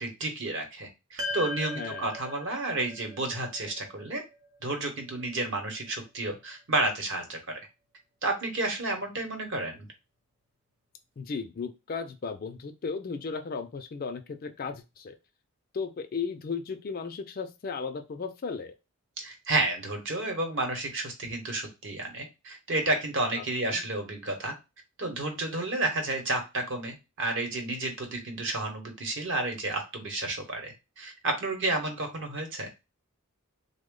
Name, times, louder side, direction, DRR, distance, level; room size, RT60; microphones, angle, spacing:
voice 1, 0.0-4.2 4.6-7.6 8.2-9.9 19.2-24.5 25.0-32.7, right 2 dB, 55° right, 4 dB, 0.9 m, -31 dB
sound 1, 1.2-5.6, left 2 dB, 90° right, 0.8 m, -39 dB
voice 2, 1.7-2.1 11.2-15.1 15.7-18.7 23.3-23.8, left 5 dB, 40° left, 7 dB, 0.4 m, -35 dB
3.4 x 2.1 x 3.7 m, 0.25 s
head